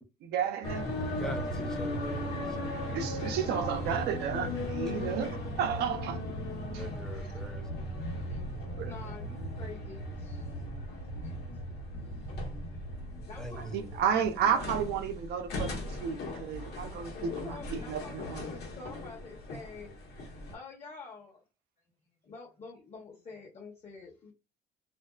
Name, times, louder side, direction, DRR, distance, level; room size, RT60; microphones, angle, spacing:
voice 1, 0.2-0.9 2.9-6.2 6.7-6.8 8.8-8.9 13.7-18.5, right 8 dB, 75° right, 0.5 m, -32 dB
sound 1, 0.6-20.5, left 1 dB, 75° left, 1.1 m, -37 dB
voice 2, 1.2-2.4 6.7-7.7 13.4-13.8, equal, 5° left, 0.7 m, -42 dB
voice 3, 6.7-7.1 8.1-10.5 10.9-11.4 13.3-14.0 14.4-14.6 17.1-21.4 22.2-24.3, left 4 dB, 40° left, 0.8 m, -48 dB
2.5 x 2.3 x 2.3 m
cardioid pair, 110°, 17 cm